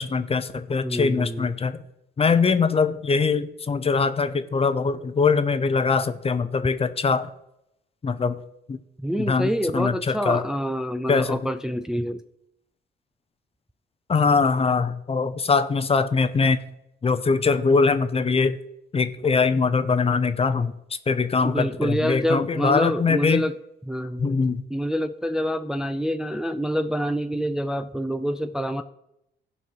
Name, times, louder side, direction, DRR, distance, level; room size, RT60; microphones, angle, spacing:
voice 1, 0.0-1.8 2.2-7.3 8.0-8.3 8.7-8.8 9.3-10.4 11.1-11.4 14.1-16.6 17.0-18.6 18.9-20.7 21.1-23.4 24.2-24.6, left 4 dB, 30° left, 11 dB, 0.7 m, -22 dB
voice 2, 0.8-1.5 9.0-12.2 21.4-23.5 23.9-28.8, equal, 5° right, 8 dB, 0.5 m, -27 dB
15.5 x 5.5 x 4.7 m, 0.81 s
cardioid pair, 90°, 20 cm